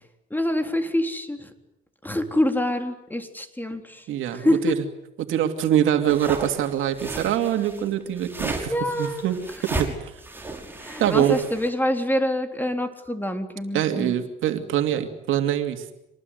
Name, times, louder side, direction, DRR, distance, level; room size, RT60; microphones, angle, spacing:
voice 1, 0.3-1.5 2.0-4.0 4.3-4.7 8.6-9.4 10.8-14.1, left 1 dB, 10° left, 6 dB, 3.6 m, -26 dB
voice 2, 4.1-4.8 5.2-9.4 9.6-10.1 11.0-11.4 13.7-15.9, right 10 dB, 85° right, 6 dB, 2.7 m, -24 dB
sound 1, 6.1-11.7, right 2 dB, 10° right, 5.7 m, -34 dB
26.5 x 20.0 x 9.5 m, 0.88 s
cardioid pair, 90°, 20 cm